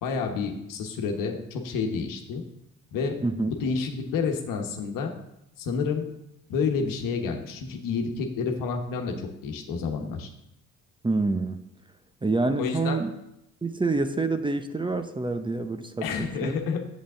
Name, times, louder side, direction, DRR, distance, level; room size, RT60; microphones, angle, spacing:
voice 1, 0.0-2.4 2.9-3.2 3.5-5.1 5.6-6.1 6.5-9.1 9.4-10.3 12.6-13.0 16.0-16.8, left 5 dB, 80° left, 3 dB, 1.3 m, -29 dB
voice 2, 11.0-11.6 12.2-13.1 13.6-16.6, right 3 dB, 15° right, 9 dB, 0.7 m, -27 dB
8.3 x 7.4 x 3.8 m, 0.83 s
supercardioid pair, 70°, 33 cm